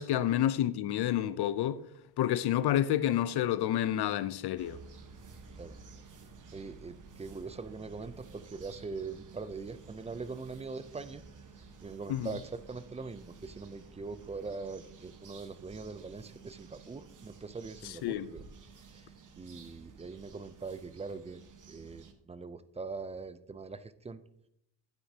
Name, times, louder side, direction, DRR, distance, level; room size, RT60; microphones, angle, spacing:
voice 1, 0.0-1.8 2.2-4.8 12.1-12.3 17.8-18.3, left 12 dB, 65° left, 0.5 m, -29 dB
sound 1, 4.6-22.1, right 4 dB, 45° right, 1.2 m, -53 dB
voice 2, 6.5-11.2 11.8-18.5 18.9-19.1 19.4-21.4 21.7-24.2, right 4 dB, 15° right, 0.4 m, -42 dB
11.5 x 9.3 x 2.8 m
cardioid pair, 110°, 42 cm